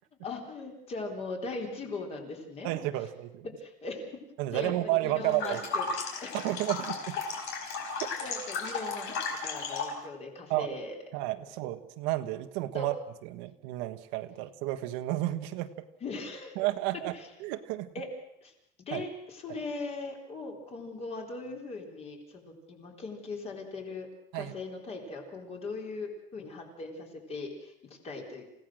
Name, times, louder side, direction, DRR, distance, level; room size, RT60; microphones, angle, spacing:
voice 1, 0.2-2.7 3.6-4.1 4.5-5.8 6.2-6.4 7.7-7.8 8.2-11.0 12.7-12.9 16.0-16.6 17.1-17.3 17.9-18.1 18.4-18.5 18.8-24.1 24.3-28.5, left 3 dB, 30° left, 1 dB, 4.1 m, -39 dB
voice 2, 2.6-3.5 4.4-5.6 6.3-7.2 8.0-8.1 10.5-10.8 11.1-12.9 13.2-15.9 16.6-17.1 17.4-17.9 18.9-19.0 24.3-24.5, right 16 dB, 80° right, 8 dB, 1.4 m, -31 dB
sound 1, 5.2-10.0, left 4 dB, 60° left, 4.9 m, -35 dB
29.0 x 16.5 x 6.4 m, 0.83 s
cardioid pair, 170°, 20 cm